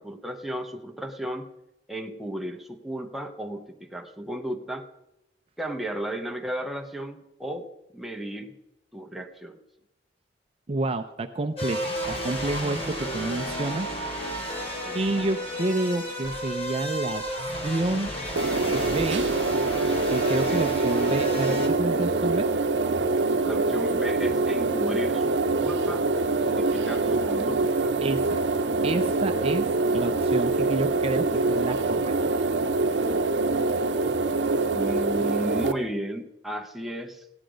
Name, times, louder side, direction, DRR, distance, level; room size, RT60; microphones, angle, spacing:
voice 1, 0.0-1.5 1.9-4.9 5.6-7.7 7.9-8.5 8.9-9.6 14.8-15.1 23.4-28.0 34.6-37.3, right 1 dB, ahead, 3 dB, 0.8 m, -34 dB
voice 2, 10.7-13.9 14.9-18.1 18.7-19.3 20.1-22.5 28.0-28.4 28.8-29.7 29.9-32.1, right 2 dB, 35° right, 7 dB, 0.5 m, -29 dB
sound 1, 11.6-21.7, equal, 35° left, 2.7 m, -32 dB
sound 2, 18.4-35.7, right 3 dB, 80° right, 0.7 m, -25 dB
15.5 x 9.8 x 5.1 m, 0.94 s
head